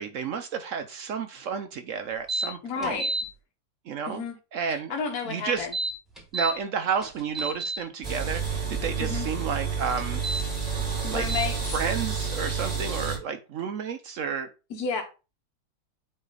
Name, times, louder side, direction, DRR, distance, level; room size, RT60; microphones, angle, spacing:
voice 1, 0.0-3.0 3.9-4.2 4.5-4.9 5.3-5.7 6.3-10.2 11.1-11.2 11.7-14.5, right 6 dB, 70° right, 0.7 m, -31 dB
sound 1, 2.3-2.5 2.8-3.2 5.6-6.5 7.0-7.8 10.1-10.4 11.3-11.5, right 2 dB, ahead, 1.7 m, -30 dB
voice 2, 2.6-3.1 4.1-4.3 4.7-5.7 9.0-9.3 11.0-11.6 14.7-15.0, left 5 dB, 55° left, 1.6 m, -31 dB
sound 2, 8.0-13.2, right 6 dB, 35° right, 2.4 m, -30 dB
8.8 x 3.2 x 3.9 m
omnidirectional pair, 2.0 m